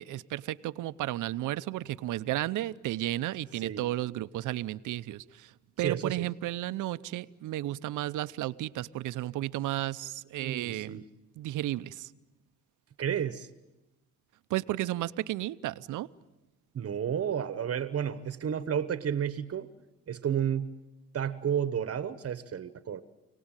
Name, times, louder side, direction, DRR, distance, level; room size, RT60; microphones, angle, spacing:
voice 1, 0.0-5.5 5.8-11.0 11.4-12.1 14.5-16.1, right 15 dB, 85° right, 0.8 m, -33 dB
voice 2, 5.8-6.3 10.4-11.0 13.0-13.5 16.7-19.7 20.1-20.8 21.1-23.0, right 8 dB, 50° right, 1.2 m, -31 dB
28.5 x 18.5 x 9.0 m
cardioid pair, 90°, 30 cm